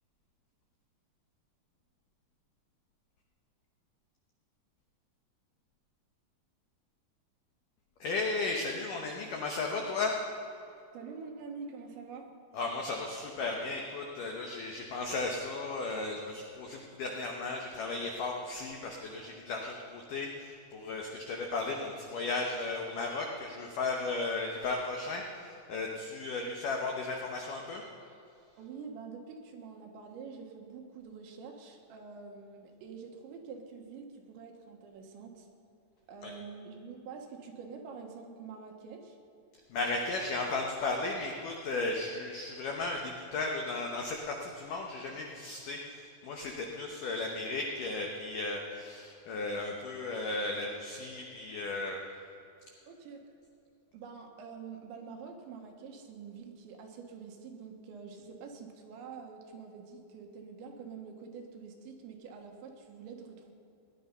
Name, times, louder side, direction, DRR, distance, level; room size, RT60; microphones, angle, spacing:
voice 1, 8.0-10.2 12.5-27.8 36.2-36.3 39.7-52.0, left 3 dB, 90° left, 1 dB, 1.8 m, -35 dB
voice 2, 10.9-12.3 24.1-24.2 28.6-35.5 36.1-39.2 52.9-53.2 53.9-63.5, right 5 dB, 75° right, 3 dB, 3.5 m, -46 dB
18.5 x 11.0 x 5.5 m, 2.6 s
omnidirectional pair, 5.5 m